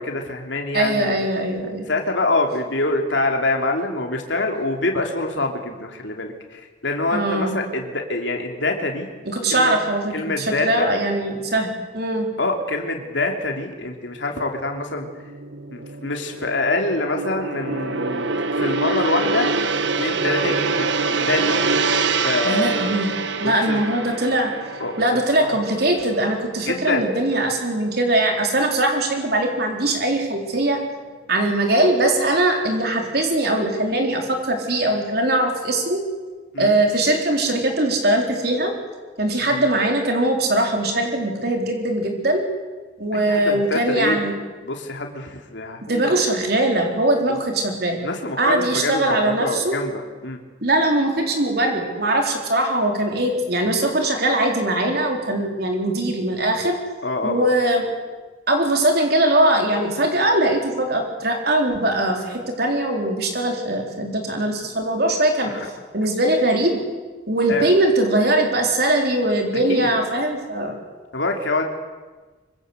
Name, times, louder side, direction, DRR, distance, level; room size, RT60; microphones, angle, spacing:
voice 1, 0.0-1.2 1.9-9.1 9.5-9.7 10.1-10.8 12.4-15.1 15.7-19.6 20.0-20.9 21.2-21.6 22.2-22.9 23.4-23.8 24.8-25.5 26.7-27.1 36.5-36.7 39.5-39.6 43.1-44.3 44.6-46.2 48.0-50.4 57.0-57.5 65.5-65.7 67.5-67.7 69.7-69.9 71.1-71.6, left 2 dB, 70° left, 2 dB, 3.2 m, -25 dB
voice 2, 0.7-1.9 7.1-7.6 9.3-12.3 22.4-23.1 23.4-24.5 25.0-30.8 31.3-36.0 36.6-38.7 39.2-42.4 43.0-44.3 45.9-48.0 48.4-49.7 50.6-56.8 57.2-57.9 58.5-65.5 65.9-66.8 67.3-70.7, right 1 dB, 55° right, 2 dB, 4.1 m, -21 dB
Gong, 14.7-27.2 27.5-27.8, right 4 dB, 70° right, 1.5 m, -25 dB
25.0 x 25.0 x 8.2 m, 1.3 s
head